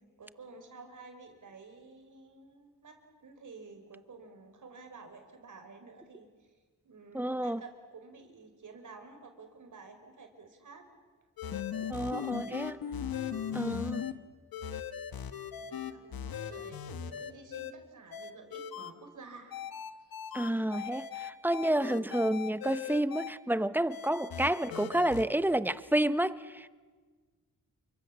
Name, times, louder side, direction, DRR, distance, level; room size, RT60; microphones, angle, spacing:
voice 1, 0.2-6.5 6.8-10.8 11.7-12.4 15.6-19.6 20.0-20.3, right 4 dB, 60° right, 4.8 m, -51 dB
voice 2, 7.1-7.6 11.9-12.8 13.5-14.0 20.3-26.7, right 1 dB, 5° right, 0.9 m, -30 dB
sound 1, 11.4-14.1 14.5-17.7 18.1-18.9 19.5-23.3 23.9-25.2, left 8 dB, 80° left, 1.5 m, -38 dB
29.0 x 24.0 x 7.4 m
cardioid pair, 90°, 35 cm